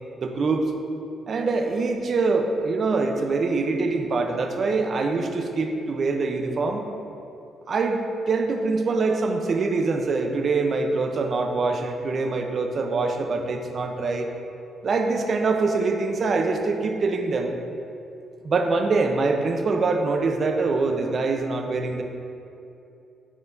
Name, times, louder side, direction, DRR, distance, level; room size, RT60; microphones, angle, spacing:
voice 1, 0.2-0.6 1.3-6.9 7.7-14.3 14.8-17.5 18.4-22.0, right 3 dB, 50° right, 4 dB, 0.6 m, -24 dB
9.9 x 4.5 x 2.6 m, 2.7 s
cardioid pair, 90°, 0 cm